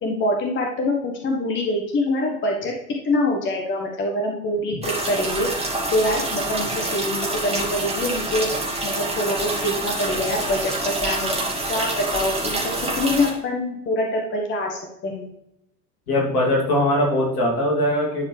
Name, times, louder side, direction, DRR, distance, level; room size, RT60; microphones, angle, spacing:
voice 1, 0.0-2.7 3.0-5.5 5.9-8.5 8.8-11.3 11.7-12.6 12.9-15.3, left 1 dB, 25° left, 1 dB, 1.2 m, -24 dB
sound 1, 4.8-13.3, right 2 dB, 15° right, 2.0 m, -26 dB
voice 2, 16.1-18.3, left 1 dB, 65° left, -3 dB, 2.8 m, -21 dB
10.5 x 4.5 x 3.3 m, 0.84 s
figure-of-eight pair, 80°, 47 cm